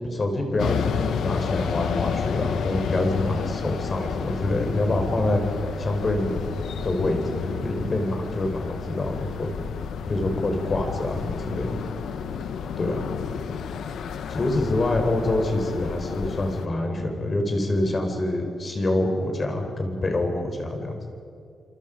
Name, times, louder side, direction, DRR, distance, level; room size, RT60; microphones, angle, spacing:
voice 1, 0.1-5.4 5.8-6.4 6.8-9.5 10.1-11.8 12.8-13.0 14.3-20.9, left 2 dB, 30° left, 3 dB, 4.3 m, -26 dB
sound 1, 0.6-16.7, left 7 dB, 85° left, 1.2 m, -31 dB
29.0 x 27.0 x 5.2 m, 2.4 s
wide cardioid pair, 145°, 0 cm